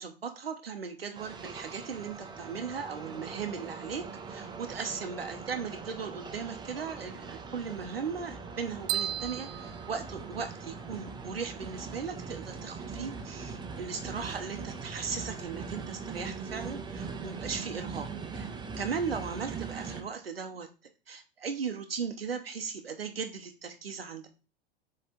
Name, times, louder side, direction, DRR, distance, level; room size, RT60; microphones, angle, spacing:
voice 1, 0.0-18.5 18.8-20.7 21.1-24.3, right 6 dB, 85° right, 5 dB, 0.9 m, -37 dB
sound 1, 1.1-20.0, right 5 dB, 15° right, 0.9 m, -41 dB
sound 2, 8.9-10.8, right 11 dB, 35° right, 0.4 m, -35 dB
7.5 x 3.3 x 4.4 m, 0.34 s
figure-of-eight pair, 85°, 29 cm